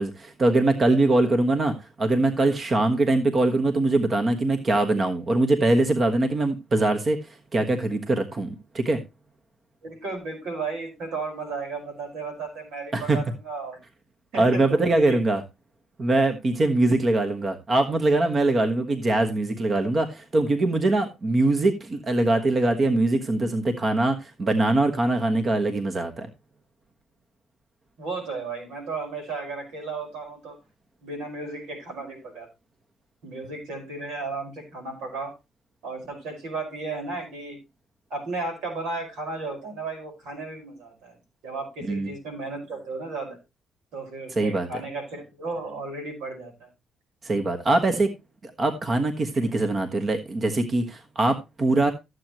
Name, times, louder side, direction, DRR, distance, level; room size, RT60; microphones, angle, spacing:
voice 1, 0.0-9.0 12.9-13.2 14.4-15.4 16.0-26.3 41.9-42.1 44.4-44.8 47.2-48.1 48.4-51.9, right 2 dB, 40° right, 1.3 m, -22 dB
voice 2, 9.8-13.8 14.3-15.2 28.0-30.6 31.0-32.5 33.2-35.3 35.8-37.6 38.1-41.2 41.4-43.4 43.9-46.7, right 3 dB, 85° right, 5.1 m, -34 dB
14.0 x 7.8 x 3.0 m
cardioid pair, 90°, 0 cm